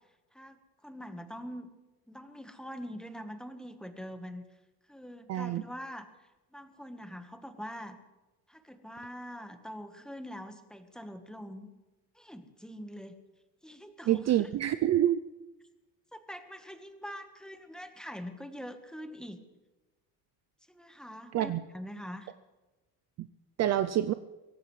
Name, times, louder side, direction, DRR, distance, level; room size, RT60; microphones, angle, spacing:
voice 1, 0.3-1.7 2.1-4.4 4.9-6.1 6.5-8.0 8.5-11.7 12.1-13.1 13.6-14.3 16.1-19.4 20.7-22.3, equal, ahead, 7 dB, 1.3 m, -44 dB
voice 2, 5.3-5.6 14.1-15.2 21.3-21.6 23.6-24.1, right 12 dB, 40° right, 12 dB, 0.5 m, -26 dB
23.5 x 17.0 x 3.2 m, 1.1 s
cardioid pair, 130°, 40 cm